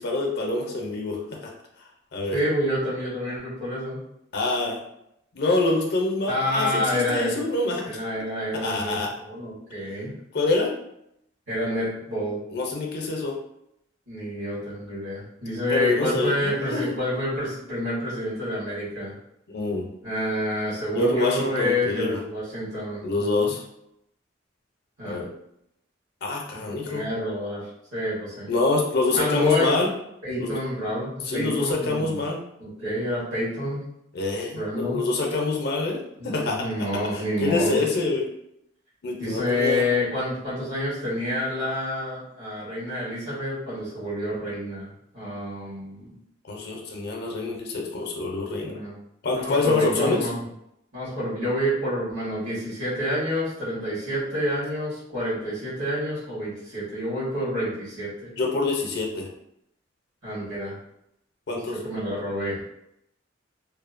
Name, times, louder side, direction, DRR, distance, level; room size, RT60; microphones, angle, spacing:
voice 1, 0.0-1.5 2.1-2.4 4.3-4.8 5.3-8.3 8.6-9.1 10.3-10.7 12.5-13.3 15.7-16.9 19.5-19.9 20.9-22.2 23.0-23.6 25.0-25.3 26.2-27.0 28.5-29.9 30.4-30.5 31.2-32.4 34.1-36.7 37.1-38.2 39.0-39.8 46.5-48.8 49.2-50.3 58.4-59.3 61.5-61.8, left 2 dB, 55° left, 1 dB, 0.5 m, -26 dB
voice 2, 2.3-4.0 6.3-7.4 7.8-9.0 9.2-10.1 11.5-12.4 14.1-19.1 20.0-23.5 25.0-25.2 26.8-27.6 27.9-28.5 29.1-29.7 30.2-32.2 32.6-33.9 34.5-35.1 36.2-37.8 39.2-46.2 48.5-48.9 49.3-50.4 50.9-58.3 60.2-60.7 61.5-62.6, left 1 dB, 85° right, -10 dB, 1.3 m, -28 dB
2.7 x 2.1 x 2.5 m, 0.78 s
head